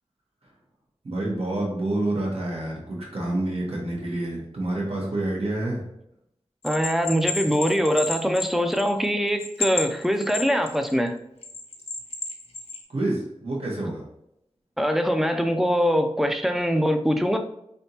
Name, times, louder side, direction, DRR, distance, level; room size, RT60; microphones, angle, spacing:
voice 1, 1.0-5.8 12.9-14.0, right 1 dB, 65° right, -3 dB, 1.2 m, -28 dB
Bell, 6.6-9.1 9.4-10.9 11.4-12.8, left 3 dB, 75° left, 0.8 m, -31 dB
voice 2, 6.6-11.2 14.8-17.4, equal, 5° right, 6 dB, 0.5 m, -23 dB
3.8 x 3.4 x 2.8 m, 0.78 s
wide cardioid pair, 55°, 11 cm